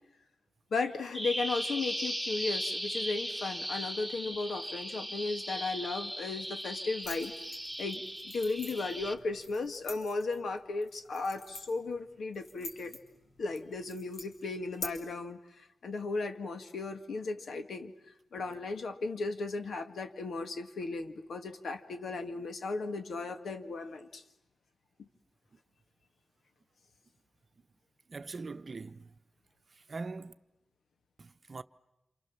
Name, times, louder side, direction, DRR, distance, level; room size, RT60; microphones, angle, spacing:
voice 1, 0.7-7.3 7.8-13.0 13.4-17.9 18.3-24.2 25.0-25.1, left 3 dB, 85° left, 2.1 m, -36 dB
Bird vocalization bird call bird song, 1.1-9.1, equal, ahead, 1.3 m, -38 dB
sound 1, 7.0-14.9, left 2 dB, 65° left, 5.1 m, -47 dB
voice 2, 28.1-29.1 29.9-30.3 31.2-31.6, right 3 dB, 45° right, 0.9 m, -41 dB
28.5 x 28.0 x 7.3 m
wide cardioid pair, 130°, 0 cm